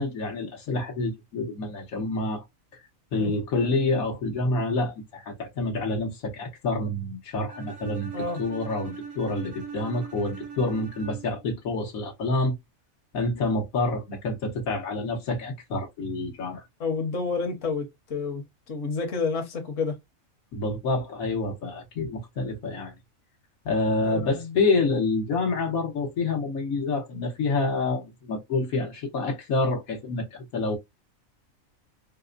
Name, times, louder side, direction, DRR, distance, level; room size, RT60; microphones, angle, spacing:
voice 1, 0.0-2.4 3.1-8.1 8.4-12.6 13.1-16.6 20.5-22.9 23.6-30.8, left 2 dB, 85° left, 1.4 m, -27 dB
Bowed string instrument, 7.5-11.5, right 6 dB, 70° right, 1.3 m, -40 dB
voice 2, 16.8-20.0 24.0-24.6, left 4 dB, 65° left, 1.3 m, -30 dB
4.1 x 2.1 x 2.4 m
omnidirectional pair, 1.4 m